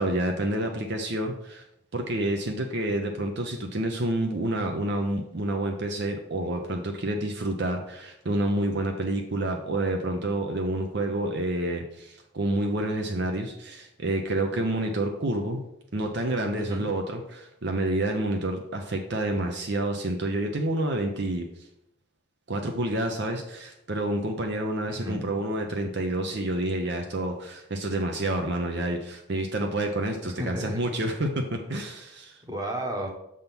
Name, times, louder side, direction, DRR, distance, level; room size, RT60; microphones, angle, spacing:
voice 1, 0.0-1.6 1.9-15.6 15.9-21.5 22.5-32.4, right 1 dB, 50° right, 3 dB, 0.7 m, -28 dB
voice 2, 16.5-16.9 24.9-25.3 30.4-30.8 31.7-31.8 32.4-33.1, equal, 15° right, 1 dB, 1.1 m, -33 dB
6.8 x 3.7 x 5.9 m, 0.80 s
head